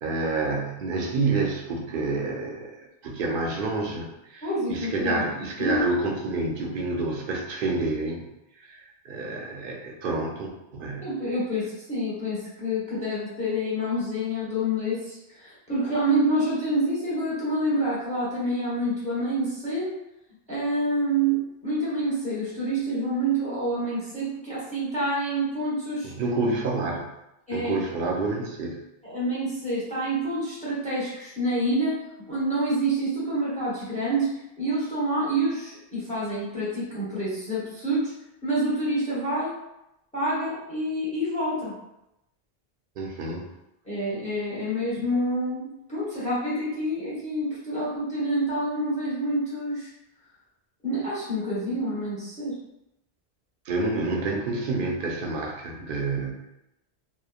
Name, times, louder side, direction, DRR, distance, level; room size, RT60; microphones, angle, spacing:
voice 1, 0.0-2.7 3.0-8.3 8.6-11.3 26.0-27.1 27.5-28.8 43.0-43.5 53.7-56.4, right 3 dB, 65° right, 0 dB, 0.7 m, -28 dB
voice 2, 4.4-5.2 5.6-5.8 11.0-20.0 20.5-26.1 27.5-27.7 29.0-32.0 32.3-38.2 38.4-39.5 40.1-41.7 43.9-49.9 50.8-52.6, right 1 dB, 5° left, -8 dB, 0.8 m, -27 dB
2.9 x 2.0 x 2.3 m, 0.88 s
omnidirectional pair, 1.1 m